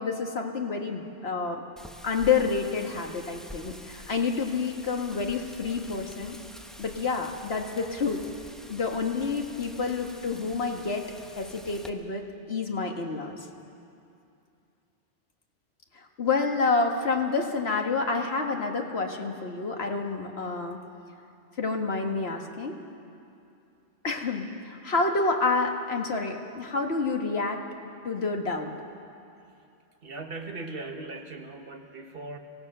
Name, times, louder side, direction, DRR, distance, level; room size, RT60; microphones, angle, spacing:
voice 1, 0.0-1.6 2.0-6.4 6.8-8.2 8.7-11.0 11.4-13.4 15.9-20.8 21.6-22.8 24.0-27.6 28.0-28.7, left 4 dB, 60° left, 2 dB, 1.9 m, -28 dB
Wind, 1.8-11.9, equal, ahead, 0.9 m, -47 dB
voice 2, 30.0-32.4, right 3 dB, 55° right, 4 dB, 1.7 m, -39 dB
24.5 x 17.0 x 6.7 m, 2.6 s
omnidirectional pair, 1.2 m